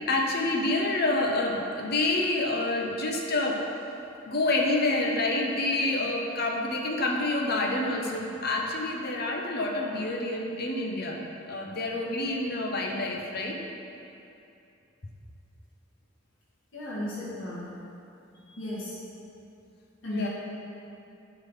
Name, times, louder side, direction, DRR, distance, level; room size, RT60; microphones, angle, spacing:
voice 1, 0.1-3.6 4.3-11.2 11.5-13.6 20.1-20.3, left 2 dB, 55° left, 0 dB, 0.9 m, -28 dB
voice 2, 16.7-17.7 18.6-19.0 20.0-20.3, left 1 dB, 75° left, -9 dB, 1.7 m, -34 dB
8.5 x 4.0 x 5.6 m, 2.7 s
head